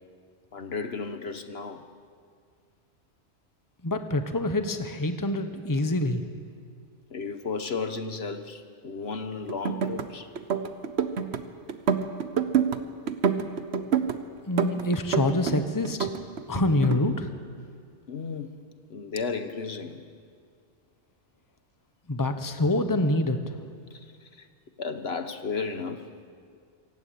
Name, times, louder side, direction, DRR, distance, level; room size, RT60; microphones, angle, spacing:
voice 1, 0.5-1.8 7.1-10.3 18.1-18.5 18.9-20.0 23.9-24.1 24.4-24.5 24.8-26.0, left 4 dB, 65° left, 9 dB, 1.3 m, -34 dB
voice 2, 3.8-6.2 14.4-16.1 16.5-17.3 22.1-23.4, left 1 dB, 20° left, 8 dB, 1.1 m, -26 dB
sound 1, 9.5-10.1 10.4-11.4 11.7-12.8 13.1-14.2 14.6-15.6 15.8-17.0, right 7 dB, 70° right, 1.2 m, -26 dB
26.0 x 15.5 x 8.6 m, 2.1 s
omnidirectional pair, 1.2 m